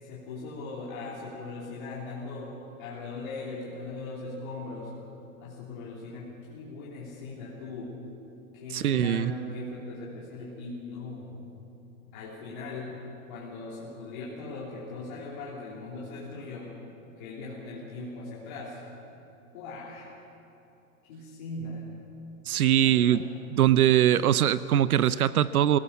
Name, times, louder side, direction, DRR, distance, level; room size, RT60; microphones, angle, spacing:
voice 1, 0.0-2.5 2.8-4.9 5.4-8.0 8.5-11.4 12.1-13.0 13.3-16.7 17.2-18.8 19.5-20.2 21.1-21.9 22.8-23.3 24.2-24.5, left 3 dB, 35° left, -7 dB, 3.2 m, -39 dB
voice 2, 8.7-9.3 22.5-23.2 23.5-25.8, right 11 dB, 75° right, 16 dB, 0.7 m, -22 dB
23.5 x 17.5 x 7.2 m, 2.8 s
hypercardioid pair, 175°, 44 cm